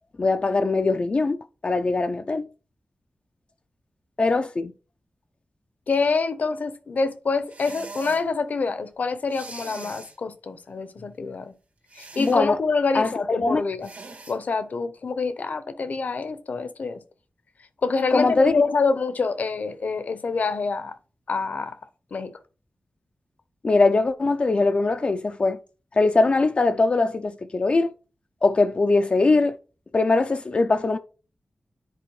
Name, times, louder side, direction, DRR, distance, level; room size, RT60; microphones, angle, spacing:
voice 1, 0.2-1.4 1.6-2.4 4.2-4.7 12.2-12.6 12.9-13.6 18.1-18.5 23.6-25.6 26.0-27.9 28.4-29.5 29.9-31.0, left 3 dB, 40° left, 0.3 m, -21 dB
voice 2, 5.9-11.5 12.0-13.9 14.3-17.0 17.8-20.9 21.3-21.8 22.1-22.3, left 4 dB, 65° left, 0.7 m, -26 dB
sound 1, 7.5-8.2 9.3-10.2 11.9-12.4 13.8-14.4, right 3 dB, 75° right, 1.8 m, -41 dB
10.0 x 4.2 x 3.1 m
wide cardioid pair, 85°, 3 cm